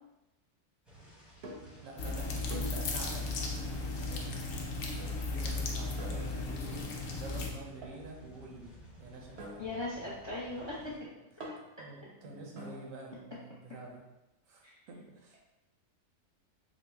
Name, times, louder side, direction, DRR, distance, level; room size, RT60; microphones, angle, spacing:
sound 1, 0.8-11.0, right 1 dB, ahead, 0.8 m, -54 dB
sound 2, 1.4-1.8 2.5-2.9 3.5-3.8 5.0-5.5 6.0-6.7 7.8-8.2 9.4-12.9, right 1 dB, 60° right, 0.8 m, -48 dB
voice 1, 1.8-3.3 3.6-4.4 5.3-6.9 7.2-9.4 11.8-14.0 14.5-15.4, right 2 dB, 75° right, 0 dB, 1.1 m, -48 dB
sound 3, 2.0-7.5, left 3 dB, 80° left, 1.0 m, -35 dB
voice 2, 9.6-10.9 14.6-14.7, left 2 dB, 35° left, -7 dB, 0.5 m, -38 dB
3.8 x 2.1 x 3.3 m, 0.95 s
omnidirectional pair, 1.4 m